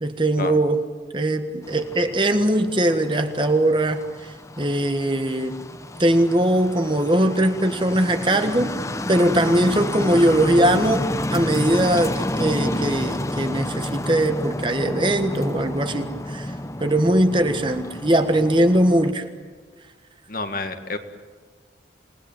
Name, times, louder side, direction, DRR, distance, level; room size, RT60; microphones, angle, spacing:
voice 1, 0.0-0.8 1.1-4.0 4.6-5.6 6.0-8.7 9.1-16.5 16.8-19.2, right 1 dB, 25° right, 8 dB, 1.4 m, -20 dB
sound 1, 1.6-19.1, left 1 dB, 15° left, 0.9 m, -30 dB
voice 2, 20.3-21.0, left 3 dB, 50° left, 7 dB, 1.8 m, -28 dB
28.0 x 19.5 x 9.0 m, 1.5 s
head